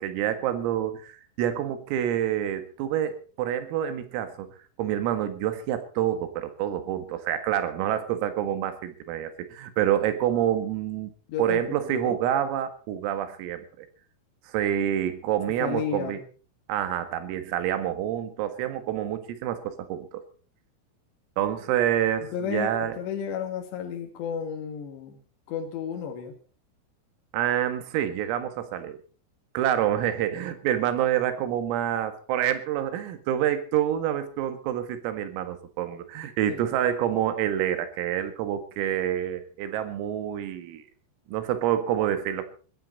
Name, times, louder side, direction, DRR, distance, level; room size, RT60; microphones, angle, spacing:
voice 1, 0.0-11.1 11.4-13.9 14.5-16.2 16.7-20.2 21.4-23.0 27.3-29.0 29.5-40.8 41.3-42.4, right 11 dB, 85° right, 9 dB, 4.4 m, -27 dB
voice 2, 11.3-12.2 15.6-16.2 22.3-25.2 25.5-26.3 36.5-36.7, left 7 dB, 65° left, 3 dB, 3.7 m, -33 dB
21.5 x 14.5 x 4.2 m, 0.39 s
omnidirectional pair, 5.9 m